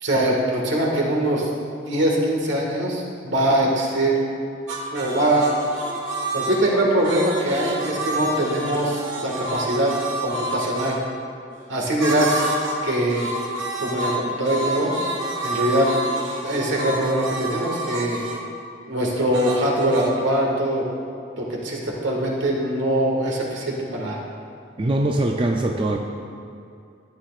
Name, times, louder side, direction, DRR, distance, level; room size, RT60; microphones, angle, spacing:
voice 1, 0.0-1.5 1.9-4.1 4.9-5.5 6.3-9.9 10.2-11.0 11.7-12.4 12.8-13.3 13.8-14.9 15.4-15.9 16.4-18.2 18.9-20.9 21.4-24.2, right 1 dB, 70° right, -1 dB, 1.7 m, -22 dB
sound 1, 4.7-11.0 12.0-12.8 13.1-18.4 19.3-20.1, right 1 dB, 90° right, 1.5 m, -29 dB
voice 2, 24.8-26.0, right 1 dB, 25° right, 1 dB, 0.4 m, -22 dB
13.0 x 9.4 x 2.4 m, 2.5 s
head